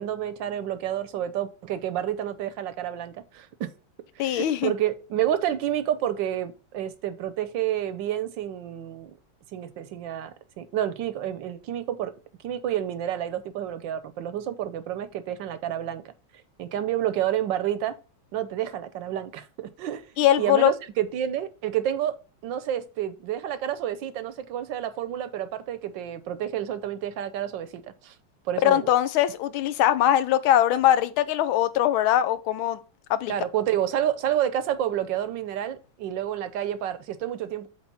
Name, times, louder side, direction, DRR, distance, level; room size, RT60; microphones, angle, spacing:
voice 1, 0.0-3.7 4.2-9.1 9.5-12.1 12.4-16.1 16.6-18.0 18.3-20.1 20.4-22.2 22.4-28.2 28.4-28.9 33.3-37.7, right 11 dB, 75° right, 1.3 m, -29 dB
voice 2, 4.2-4.7 20.2-20.7 28.6-32.8 33.1-33.3, left 11 dB, 85° left, 1.5 m, -21 dB
8.2 x 3.5 x 5.5 m
omnidirectional pair, 2.2 m